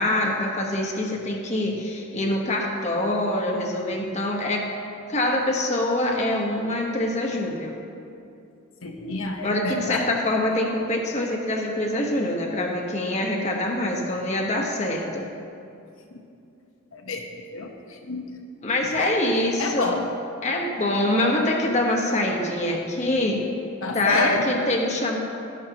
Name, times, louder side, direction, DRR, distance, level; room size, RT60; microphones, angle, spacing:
voice 1, 0.0-4.7 5.1-7.8 9.4-15.3 18.6-20.0 20.4-23.5 23.9-25.2, left 1 dB, 35° left, 0 dB, 1.1 m, -25 dB
voice 2, 8.8-10.1 16.9-17.2 17.5-18.2 18.9-19.1 19.6-20.1 23.8-24.8, left 3 dB, 80° left, 2 dB, 1.2 m, -29 dB
12.5 x 11.5 x 2.9 m, 2.6 s
head